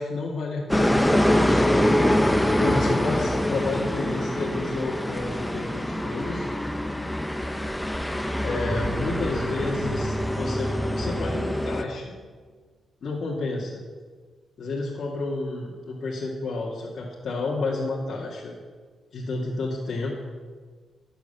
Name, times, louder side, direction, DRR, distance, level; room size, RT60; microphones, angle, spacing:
voice 1, 0.0-2.1 2.6-6.4 8.4-12.1 13.0-13.8 14.6-18.5 19.1-20.1, left 3 dB, 65° left, -4 dB, 2.1 m, -31 dB
sound 1, 0.7-11.8, left 1 dB, 5° left, 0.9 m, -25 dB
sound 2, 8.7-12.2, right 1 dB, 25° right, 4.0 m, -32 dB
12.5 x 8.2 x 6.8 m, 1.5 s
cardioid pair, 75°, 0 cm